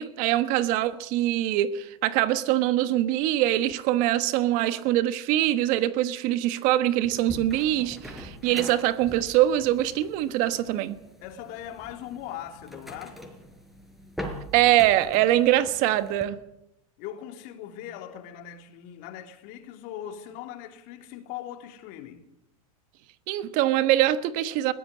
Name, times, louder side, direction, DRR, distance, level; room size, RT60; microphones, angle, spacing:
voice 1, 0.0-11.0 14.5-16.4 23.3-24.7, right 13 dB, 50° right, 1.3 m, -23 dB
sound 1, 7.0-16.2, equal, ahead, 4.6 m, -43 dB
voice 2, 11.2-13.2 17.0-22.3, left 11 dB, 50° left, 3.1 m, -40 dB
21.5 x 15.5 x 8.6 m
hypercardioid pair, 120°, 18 cm